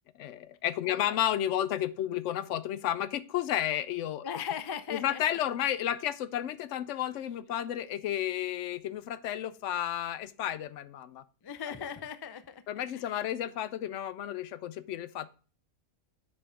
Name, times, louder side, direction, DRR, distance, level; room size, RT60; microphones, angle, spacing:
voice 1, 0.1-4.2 4.9-11.2 11.7-11.8 12.7-15.3, left 11 dB, 80° left, 15 dB, 0.9 m, -32 dB
voice 2, 0.9-1.2 4.2-5.4 11.4-12.6 12.9-13.2, left 8 dB, 40° left, 11 dB, 0.3 m, -39 dB
7.6 x 6.1 x 3.2 m, 0.38 s
omnidirectional pair, 1.3 m